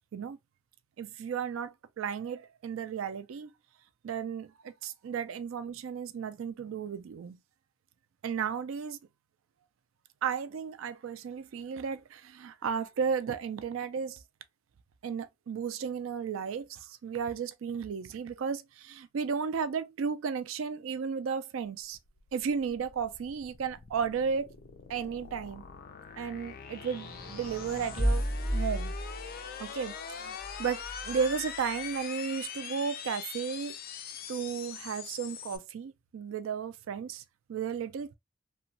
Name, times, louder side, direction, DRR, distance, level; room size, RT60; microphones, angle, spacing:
voice 1, 1.0-3.5 4.0-7.4 8.2-9.0 10.2-14.2 15.0-22.0 22.3-24.5 24.9-25.6 26.2-28.3 28.5-28.9 29.6-33.8 34.3-37.2 37.5-38.1, right 6 dB, 85° right, 0.4 m, -34 dB
sound 1, 21.8-35.6, left 7 dB, 50° left, 0.4 m, -43 dB
sound 2, 26.8-29.5 30.4-31.4, equal, 5° right, 1.7 m, -33 dB
3.0 x 2.2 x 2.6 m
head